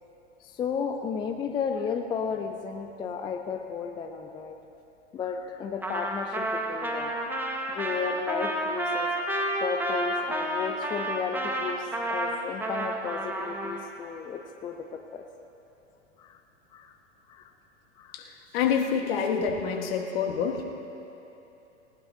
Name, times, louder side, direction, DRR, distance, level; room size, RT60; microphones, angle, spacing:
voice 1, 0.4-4.6 5.1-7.2 7.5-9.1 9.4-15.2 16.2-16.4 16.7-16.9 17.3-17.5 18.0-18.2, left 6 dB, 15° left, 5 dB, 0.4 m, -33 dB
Trumpet, 5.8-13.8, right 1 dB, 5° right, 1.1 m, -30 dB
voice 2, 18.1-20.6, left 6 dB, 50° left, 4 dB, 1.5 m, -27 dB
19.0 x 18.5 x 2.7 m, 3.0 s
figure-of-eight pair, 105°, 36 cm